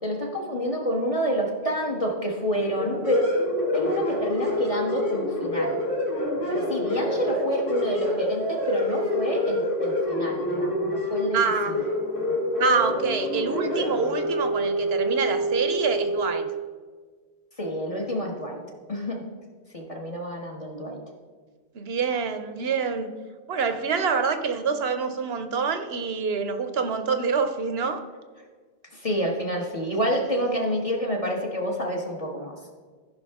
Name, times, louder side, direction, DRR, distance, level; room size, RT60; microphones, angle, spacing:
voice 1, 0.0-3.2 3.7-5.8 6.5-11.4 11.7-11.9 17.6-18.6 18.9-19.2 19.7-21.0 28.9-32.6, equal, 35° left, -1 dB, 1.3 m, -28 dB
sound 1, 2.5-16.3, left 1 dB, 80° left, 2.4 m, -27 dB
voice 2, 11.3-11.8 12.6-16.5 21.7-23.1 23.5-28.0, right 5 dB, 75° right, 9 dB, 1.0 m, -26 dB
14.5 x 5.6 x 3.5 m, 1.5 s
omnidirectional pair, 1.1 m